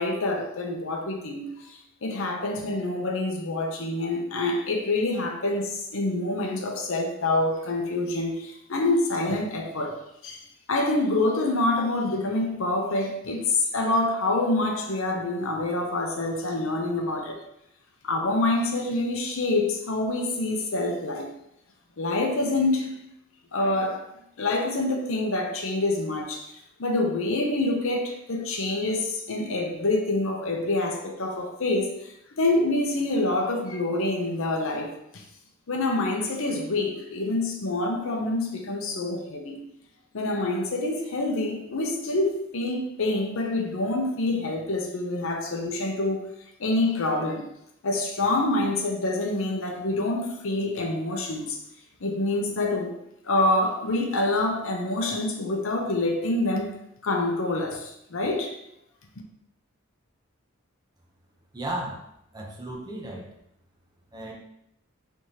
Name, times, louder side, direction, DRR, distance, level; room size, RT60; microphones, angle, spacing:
voice 1, 0.0-10.0 10.2-10.4 10.7-17.4 18.0-21.3 22.0-23.0 23.5-24.0 24.4-35.2 35.7-39.6 40.1-46.2 46.6-47.5 47.8-51.6 52.0-52.9 53.2-56.7 57.0-58.5, left 2 dB, 65° left, 2 dB, 0.8 m, -26 dB
voice 2, 61.5-62.0 62.3-63.3 64.1-64.3, right 1 dB, 20° right, -1 dB, 0.8 m, -34 dB
4.6 x 3.5 x 2.9 m, 0.78 s
head